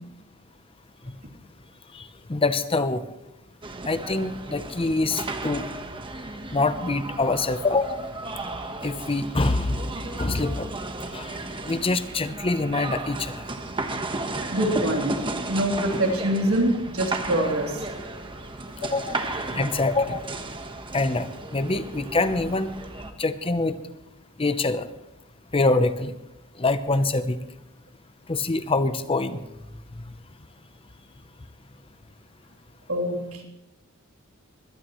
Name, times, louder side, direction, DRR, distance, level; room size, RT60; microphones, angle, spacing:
voice 1, 1.9-3.0 3.9-5.6 6.5-8.0 8.8-9.8 10.2-10.7 11.1-11.3 11.6-13.5 18.8-20.3 20.9-22.7 23.2-23.7 24.4-24.9 25.5-26.1 26.6-27.4 28.3-29.4, left 3 dB, 25° left, 11 dB, 0.7 m, -25 dB
sound 1, 3.6-23.1, right 2 dB, 25° right, 1.2 m, -34 dB
voice 2, 14.5-15.2 15.5-17.8 18.8-18.9 32.9-33.4, right 1 dB, 80° right, 0 dB, 3.2 m, -25 dB
23.5 x 18.0 x 3.1 m, 0.93 s
head